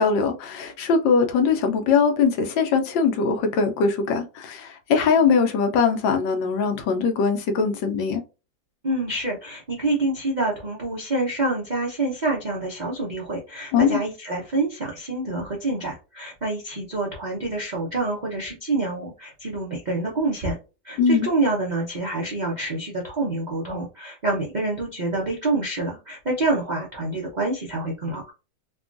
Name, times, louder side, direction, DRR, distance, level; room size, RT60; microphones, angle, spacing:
voice 1, 0.0-8.2 13.7-14.0 21.0-21.3, left 5 dB, 85° left, 1.4 m, -21 dB
voice 2, 8.8-20.6 20.8-28.3, right 2 dB, 65° right, 0.4 m, -27 dB
3.4 x 2.2 x 2.5 m
omnidirectional pair, 2.0 m